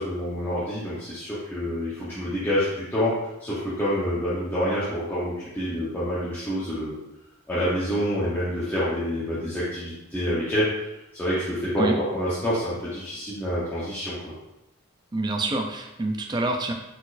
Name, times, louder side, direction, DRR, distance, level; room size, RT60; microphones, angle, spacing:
voice 1, 0.0-6.9 7.5-10.7 11.1-14.3, equal, 10° left, -12 dB, 0.9 m, -27 dB
voice 2, 15.1-16.7, right 2 dB, 20° right, 2 dB, 0.4 m, -26 dB
4.3 x 4.2 x 2.6 m, 0.93 s
head